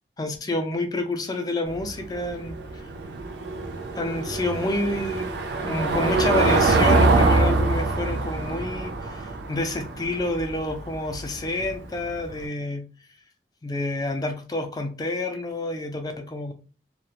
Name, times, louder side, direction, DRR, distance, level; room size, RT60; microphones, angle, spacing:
voice 1, 0.2-2.8 4.0-5.3 5.6-12.9 13.6-16.5, left 2 dB, 20° left, 0.3 m, -28 dB
Car passing by / Engine, 1.7-12.3, right 3 dB, 85° right, 0.4 m, -24 dB
2.4 x 2.1 x 2.8 m
head